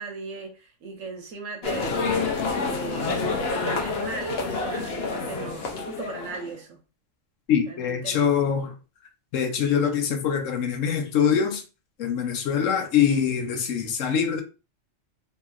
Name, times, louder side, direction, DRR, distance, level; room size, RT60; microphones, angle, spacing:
voice 1, 0.0-2.0 2.7-6.8 7.7-8.3, right 4 dB, 80° right, 1.2 m, -37 dB
sound 1, 1.6-6.5, left 4 dB, 60° left, 0.8 m, -28 dB
voice 2, 7.5-8.7 9.3-11.6 12.0-14.4, left 7 dB, 85° left, 1.0 m, -24 dB
3.0 x 2.8 x 2.3 m
omnidirectional pair, 1.3 m